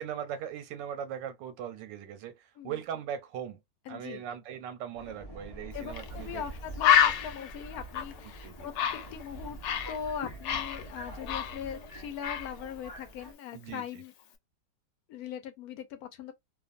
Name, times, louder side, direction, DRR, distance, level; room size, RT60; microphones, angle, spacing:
voice 1, 0.0-3.6 3.9-6.4 8.2-8.7 13.5-14.0, right 9 dB, 90° right, 1.3 m, -39 dB
voice 2, 3.9-4.2 5.7-8.7 9.1-9.6 9.9-14.1 15.1-16.3, left 8 dB, 65° left, 1.0 m, -40 dB
Subway metro underground, 4.9-13.3, right 1 dB, 25° left, 0.5 m, -45 dB
Bird, 5.9-6.1 6.4-6.5 6.8-10.0 10.2-11.9 12.2-12.5, left 9 dB, 85° left, 1.3 m, -28 dB
2.9 x 2.3 x 2.5 m
omnidirectional pair, 1.9 m